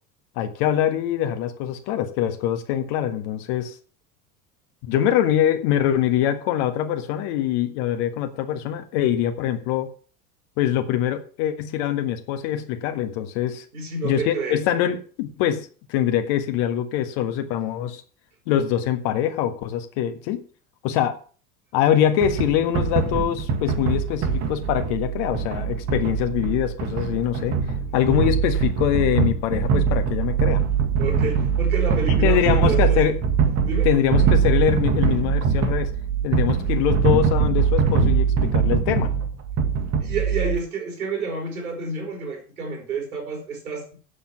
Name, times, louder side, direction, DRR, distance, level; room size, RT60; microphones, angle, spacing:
voice 1, 0.4-3.8 4.8-9.9 10.6-13.6 14.0-18.0 18.5-20.4 20.8-21.2 21.7-27.6 27.9-30.6 32.2-33.2 33.8-35.9 36.2-39.1, left 10 dB, 50° left, 8 dB, 1.6 m, -23 dB
voice 2, 13.7-14.6 31.0-33.1 33.7-33.9 40.0-44.0, right 3 dB, 75° right, 3 dB, 4.1 m, -29 dB
sound 1, 22.2-40.6, right 6 dB, 35° right, 1.9 m, -22 dB
8.6 x 7.4 x 7.1 m, 0.39 s
figure-of-eight pair, 70°, 44 cm